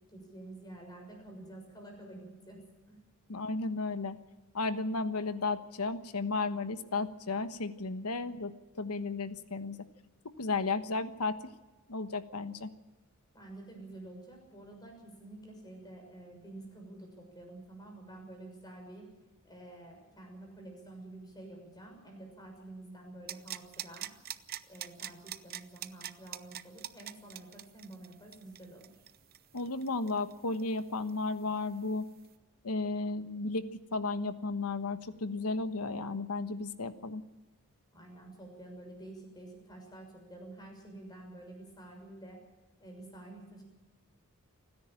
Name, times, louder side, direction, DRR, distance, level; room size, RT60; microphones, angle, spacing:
voice 1, 0.1-3.0 13.3-19.1 19.4-24.1 24.6-29.0 37.9-42.4 42.8-43.6, right 2 dB, 20° left, 2 dB, 6.4 m, -49 dB
voice 2, 3.3-4.2 4.5-9.8 10.4-11.4 11.9-12.7 29.5-32.1 32.6-37.2, left 3 dB, 90° left, 11 dB, 1.2 m, -34 dB
sound 1, 23.3-30.8 31.1-31.2, right 11 dB, 45° right, 0.7 m, -43 dB
29.5 x 10.5 x 8.9 m, 1.1 s
head